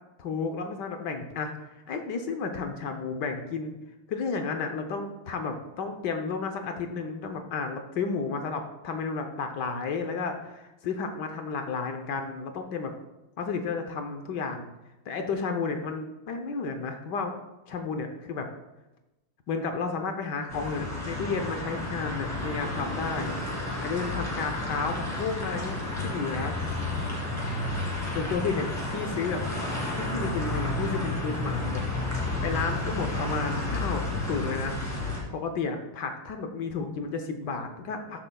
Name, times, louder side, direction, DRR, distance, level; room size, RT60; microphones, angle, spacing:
voice 1, 0.2-1.5 1.9-3.8 4.1-12.9 13.4-14.7 15.1-17.3 17.7-18.5 19.5-23.4 23.8-25.8 26.0-26.6 28.1-29.4 29.9-31.8 32.4-34.8 35.3-38.3, left 4 dB, 65° left, 6 dB, 1.3 m, -32 dB
sound 1, 20.5-35.2, left 2 dB, 10° left, 2.1 m, -31 dB
13.5 x 7.6 x 2.3 m, 0.99 s
omnidirectional pair, 2.3 m